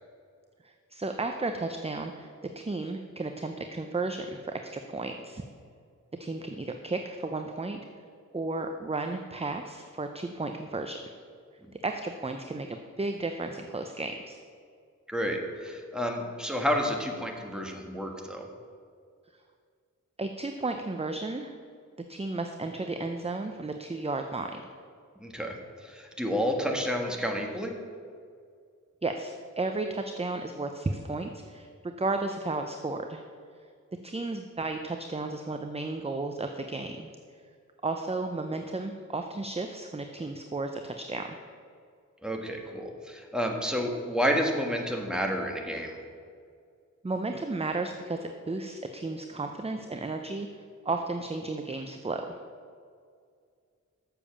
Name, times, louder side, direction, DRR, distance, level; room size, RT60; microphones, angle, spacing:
voice 1, 0.6-5.4 6.2-7.9 8.3-11.0 11.8-14.4 20.2-21.6 22.1-24.6 29.0-33.2 34.0-37.1 37.8-41.4 47.0-52.4, right 3 dB, 20° right, 5 dB, 0.6 m, -33 dB
voice 2, 15.1-18.5 25.2-25.5 25.8-27.7 42.2-45.9, equal, ahead, 1 dB, 1.5 m, -30 dB
7.3 x 6.9 x 7.0 m, 2.2 s
wide cardioid pair, 55°, 31 cm